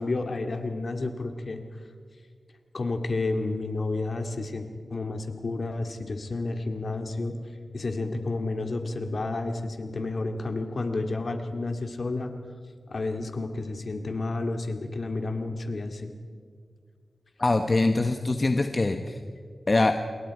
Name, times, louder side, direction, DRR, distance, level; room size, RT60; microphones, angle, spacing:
voice 1, 0.0-1.6 2.7-7.4 7.7-12.3 12.9-16.1, left 2 dB, 55° left, 6 dB, 2.1 m, -31 dB
voice 2, 17.4-19.2 19.7-20.0, left 2 dB, 35° left, 6 dB, 1.1 m, -23 dB
28.0 x 21.5 x 4.8 m, 2.1 s
wide cardioid pair, 85°, 0 cm